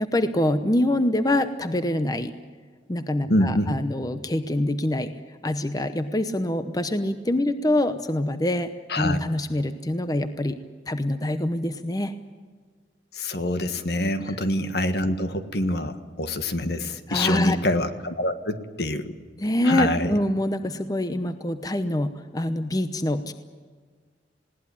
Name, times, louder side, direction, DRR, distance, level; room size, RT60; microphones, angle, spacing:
voice 1, 0.0-2.3 2.9-8.7 9.0-10.6 10.9-12.1 14.3-14.4 17.1-17.6 19.4-23.3, left 1 dB, 20° left, 10 dB, 0.8 m, -25 dB
voice 2, 3.3-3.7 8.9-9.2 13.1-19.1 19.6-20.1, left 1 dB, 65° left, 9 dB, 1.6 m, -25 dB
20.5 x 18.0 x 10.0 m, 1.5 s
head